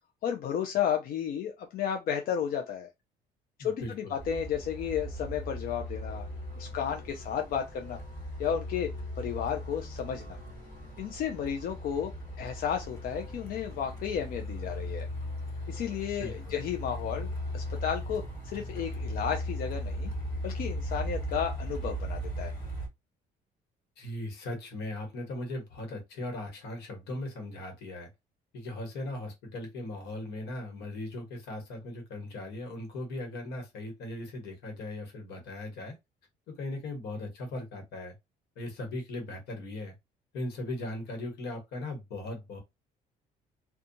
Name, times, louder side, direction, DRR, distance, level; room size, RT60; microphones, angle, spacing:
voice 1, 0.2-2.9 3.6-3.8 4.1-6.2 6.6-8.0 8.4-8.9 9.2-10.4 11.0-12.1 12.4-15.1 15.7-20.1 20.4-22.5, left 8 dB, 60° left, 0.5 m, -33 dB
voice 2, 3.6-4.2 16.2-16.6 24.0-28.1 28.5-36.0 36.5-38.1 38.5-39.9 40.3-42.6, left 1 dB, 80° left, 1.2 m, -38 dB
Truck, 4.2-22.9, equal, 20° left, 1.6 m, -38 dB
2.6 x 2.3 x 2.6 m
cardioid pair, 110°, 17 cm